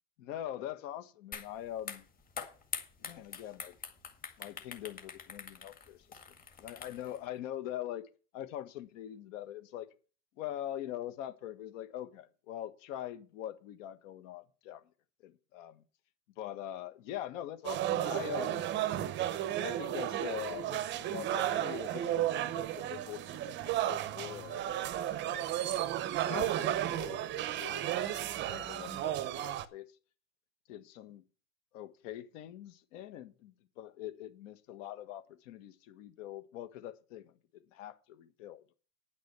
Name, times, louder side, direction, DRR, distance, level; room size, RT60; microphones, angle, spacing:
voice 1, 0.2-2.1 3.0-3.7 4.4-6.2 6.6-9.9 10.4-14.8 15.2-15.8 16.4-18.7 19.6-25.6 26.3-29.9 30.7-31.2 31.7-38.7, left 12 dB, 55° left, 1.5 m, -43 dB
sound 1, 1.3-1.5 1.8-7.2, left 6 dB, 20° left, 1.9 m, -44 dB
sound 2, 17.6-29.6, right 12 dB, 25° right, 0.7 m, -33 dB
9.7 x 6.2 x 8.1 m
hypercardioid pair, 130°, 45 cm